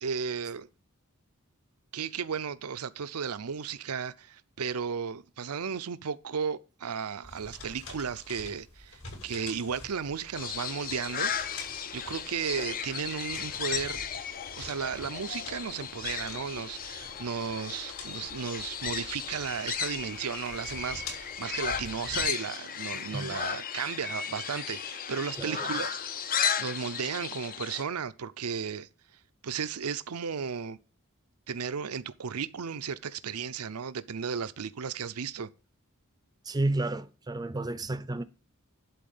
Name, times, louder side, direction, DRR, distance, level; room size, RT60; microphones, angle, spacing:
voice 1, 0.0-0.7 1.9-11.3 11.9-14.0 14.6-26.0 26.6-28.9 29.4-30.8 31.5-35.5, right 6 dB, 90° right, 0.6 m, -34 dB
sound 1, 7.2-22.3, left 3 dB, 65° left, 7.1 m, -47 dB
sound 2, 10.3-27.8, left 7 dB, 40° left, 0.6 m, -35 dB
voice 2, 36.5-38.2, right 2 dB, 20° right, 0.5 m, -31 dB
11.5 x 4.2 x 7.1 m
head